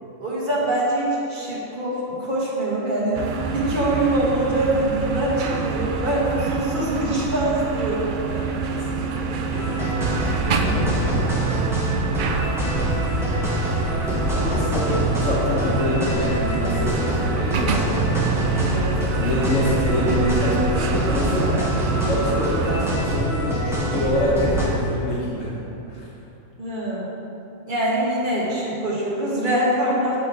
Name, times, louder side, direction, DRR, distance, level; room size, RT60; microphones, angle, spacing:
voice 1, 0.2-3.2 3.5-8.4 18.6-19.0 20.9-21.0 26.6-27.1 27.6-30.2, right 1 dB, 40° right, -6 dB, 1.4 m, -24 dB
sound 1, 3.1-23.0, right 4 dB, 75° right, 0.4 m, -27 dB
voice 2, 8.3-9.2 9.5-9.8 14.1-17.9 19.2-20.5 20.8-21.7 22.0-25.5 25.9-26.0, left 1 dB, 65° left, -7 dB, 1.4 m, -25 dB
sound 2, 9.5-24.7, right 1 dB, ahead, 1.0 m, -24 dB
8.8 x 3.7 x 4.7 m, 3.0 s
omnidirectional pair, 1.4 m